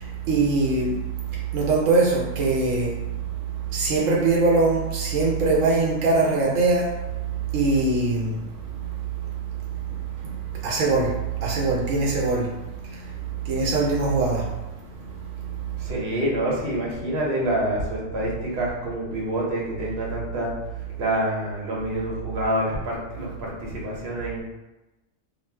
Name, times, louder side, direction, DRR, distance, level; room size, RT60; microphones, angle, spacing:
voice 1, 0.3-0.9 1.5-2.9 3.7-6.8 7.5-8.4 10.6-11.1 11.4-12.5 13.5-14.4, right 3 dB, 80° right, -3 dB, 1.0 m, -21 dB
voice 2, 15.8-20.5 21.0-24.4, right 1 dB, 50° right, -4 dB, 0.9 m, -27 dB
2.4 x 2.3 x 3.2 m, 1.0 s
omnidirectional pair, 1.4 m